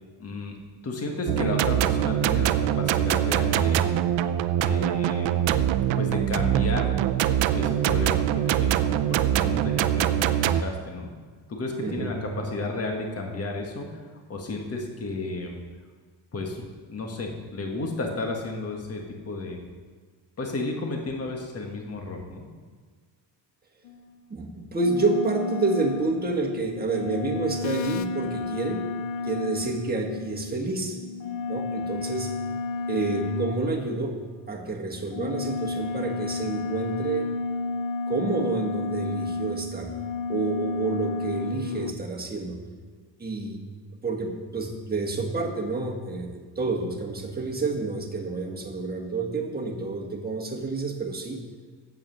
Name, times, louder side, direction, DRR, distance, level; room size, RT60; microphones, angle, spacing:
voice 1, 0.2-0.6 0.8-3.8 4.6-5.4 5.9-7.0 7.5-11.1 11.5-14.0 14.3-15.6 16.3-16.6 16.9-19.6 20.4-22.5, left 2 dB, 35° left, 2 dB, 1.5 m, -32 dB
sound 1, 1.3-10.6, right 11 dB, 85° right, 0.6 m, -23 dB
voice 2, 11.8-12.1 24.3-28.8 29.2-31.0 31.5-32.3 32.9-34.1 34.5-37.3 38.1-39.9 40.3-42.6 43.2-43.6 44.0-51.4, right 3 dB, 20° right, 0 dB, 1.6 m, -29 dB
sound 2, 23.8-24.0 24.8-34.4 34.9-41.9, left 3 dB, 85° left, 0.6 m, -32 dB
8.5 x 7.6 x 6.4 m, 1.5 s
cardioid pair, 105°, 44 cm